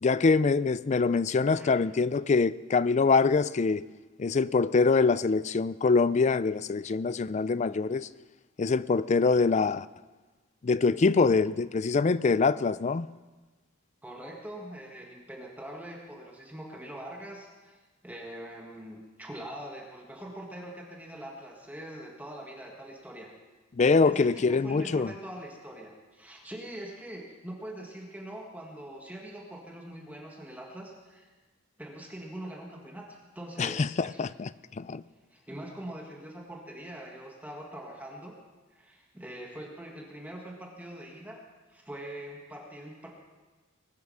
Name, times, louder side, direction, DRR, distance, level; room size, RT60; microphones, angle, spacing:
voice 1, 0.0-3.8 4.2-8.1 8.6-9.9 10.6-13.1 23.8-25.1 33.6-34.5 34.8-35.0, left 4 dB, 35° left, 0.4 m, -24 dB
voice 2, 14.0-17.8 18.0-23.3 24.0-31.3 31.8-34.2 35.3-38.4 38.7-41.4 41.7-43.1, right 1 dB, 10° right, 1.6 m, -43 dB
21.0 x 9.4 x 6.3 m
head